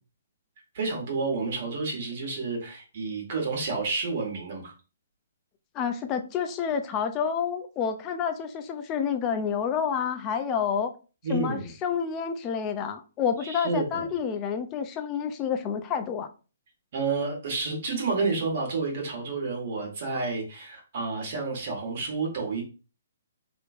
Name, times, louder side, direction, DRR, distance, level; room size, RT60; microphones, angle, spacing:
voice 1, 0.7-4.7 11.2-11.7 13.4-14.1 16.9-22.6, right 4 dB, 55° right, 1.5 m, -30 dB
voice 2, 5.7-10.9 11.3-16.3, left 7 dB, 25° left, 0.4 m, -29 dB
3.0 x 3.0 x 2.4 m
hypercardioid pair, 135°, 0 cm